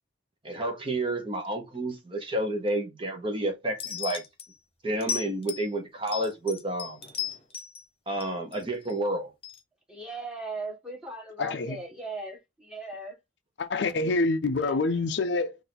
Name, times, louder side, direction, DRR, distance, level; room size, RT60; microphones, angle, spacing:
voice 1, 0.4-4.2 4.8-7.0 8.1-9.3, right 1 dB, 30° right, 1.1 m, -30 dB
sound 1, 3.8-4.5 5.0-5.7 6.1-7.8 8.2-8.9 9.4-9.6, left 8 dB, 30° left, 1.1 m, -35 dB
voice 2, 9.9-13.2 14.6-15.0, right 2 dB, 5° right, 1.6 m, -38 dB
voice 3, 11.4-11.8 13.6-15.6, left 3 dB, 65° left, 0.5 m, -26 dB
4.1 x 2.7 x 4.0 m
head